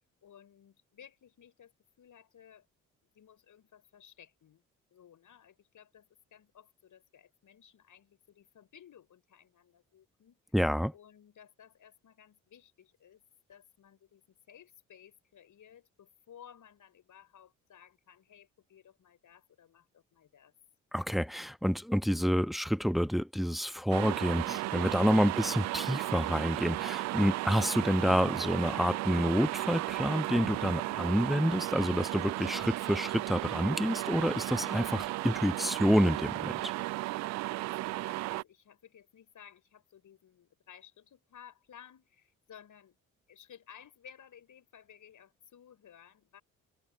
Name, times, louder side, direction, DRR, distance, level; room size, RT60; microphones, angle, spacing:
voice 1, 0.0-2.7 3.1-4.6 4.9-10.4 10.9-13.2 13.5-20.5 37.4-43.0 43.3-46.4, left 9 dB, 50° left, 5.8 m, -57 dB
voice 2, 10.5-10.9 20.9-36.7, equal, ahead, 1.3 m, -28 dB
sound 1, 23.9-38.4, right 19 dB, 45° right, 0.4 m, -35 dB
figure-of-eight pair, 45°, 40 cm